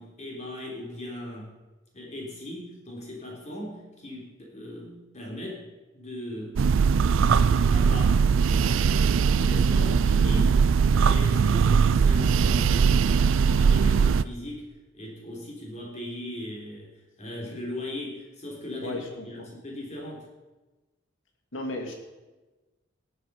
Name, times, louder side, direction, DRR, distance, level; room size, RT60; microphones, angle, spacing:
voice 1, 0.0-1.5 1.9-5.6 5.9-6.6 7.3-14.7 14.9-16.9 17.2-20.3, left 1 dB, 40° left, -2 dB, 3.7 m, -38 dB
sound 1, 6.6-14.2, right 6 dB, 90° right, 0.4 m, -20 dB
voice 2, 18.8-19.5 21.5-22.0, left 2 dB, 80° left, 2 dB, 2.4 m, -35 dB
17.5 x 7.9 x 5.4 m, 1.2 s
head